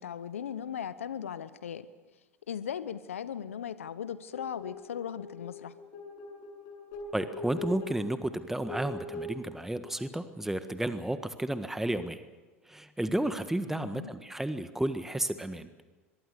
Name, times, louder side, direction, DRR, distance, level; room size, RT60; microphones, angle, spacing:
voice 1, 0.0-1.9 2.5-5.7 13.7-14.1, left 8 dB, 85° left, 15 dB, 0.9 m, -38 dB
sound 1, 4.3-10.7 11.7-11.8, left 1 dB, 55° left, 7.6 m, -43 dB
voice 2, 7.1-12.2 12.7-15.7, right 1 dB, 5° right, 10 dB, 1.5 m, -32 dB
24.0 x 22.5 x 6.8 m, 1.2 s
hypercardioid pair, 80°, 7 cm